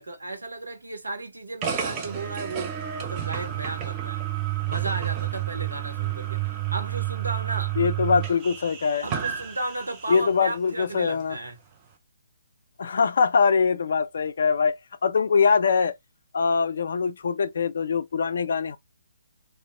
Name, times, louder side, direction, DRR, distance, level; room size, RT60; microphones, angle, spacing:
voice 1, 0.0-4.2 4.7-7.8 9.0-11.6, right 2 dB, 75° right, 0.8 m, -34 dB
sound 1, 1.6-10.3, right 12 dB, 25° right, 0.5 m, -30 dB
voice 2, 7.8-9.1 10.1-11.4 12.8-14.8 15.0-15.9 16.3-18.8, left 5 dB, 55° left, 0.4 m, -23 dB
2.8 x 2.4 x 2.3 m
figure-of-eight pair, 135°, 0 cm